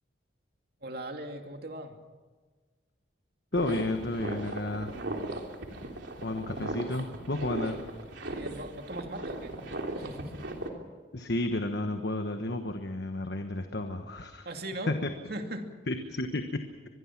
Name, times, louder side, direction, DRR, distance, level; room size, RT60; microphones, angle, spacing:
voice 1, 0.8-2.0 8.2-9.5 10.0-10.5 14.4-14.9 15.3-15.7, right 1 dB, 55° right, 4 dB, 2.5 m, -39 dB
voice 2, 3.5-4.9 6.2-7.8 11.1-14.5 14.9-15.1 15.9-16.7, left 2 dB, 60° left, 6 dB, 1.3 m, -32 dB
sound 1, 3.5-10.7, right 2 dB, 70° right, 3.2 m, -37 dB
24.5 x 22.0 x 6.0 m, 1.4 s
head